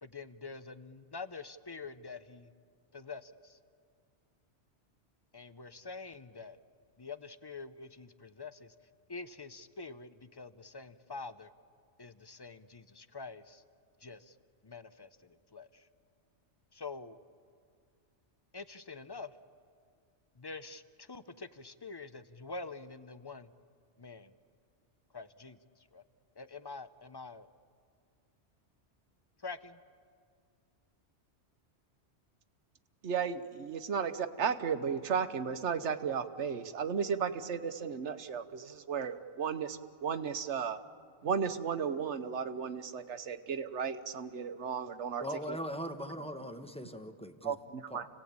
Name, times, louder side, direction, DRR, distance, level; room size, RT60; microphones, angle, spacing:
voice 1, 0.0-2.5 2.9-3.6 5.3-6.6 7.0-8.7 9.1-11.5 12.0-13.6 14.0-14.3 14.6-15.9 16.7-17.2 18.5-19.3 20.4-23.5 24.0-24.3 25.1-25.6 25.9-26.0 26.4-27.5 29.4-29.8, left 4 dB, 30° left, 12 dB, 0.6 m, -46 dB
voice 2, 33.0-40.8 41.2-45.6 47.4-48.1, right 6 dB, 80° right, 10 dB, 1.3 m, -34 dB
voice 3, 45.2-47.6 47.9-48.0, equal, 5° left, 6 dB, 1.1 m, -40 dB
29.5 x 18.0 x 8.7 m, 2.1 s
omnidirectional pair, 1.2 m